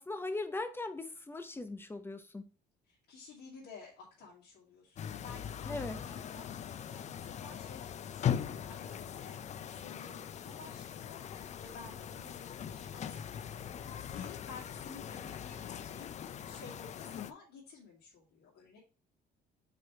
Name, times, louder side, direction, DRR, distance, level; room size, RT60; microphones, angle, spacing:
voice 1, 0.0-2.5 5.7-6.0, left 2 dB, 15° left, 0.9 m, -39 dB
voice 2, 2.9-18.8, left 4 dB, 75° left, 2.4 m, -53 dB
sound 1, 5.0-17.3, left 9 dB, 45° left, 0.5 m, -40 dB
4.9 x 4.7 x 4.5 m
cardioid pair, 110°, 17 cm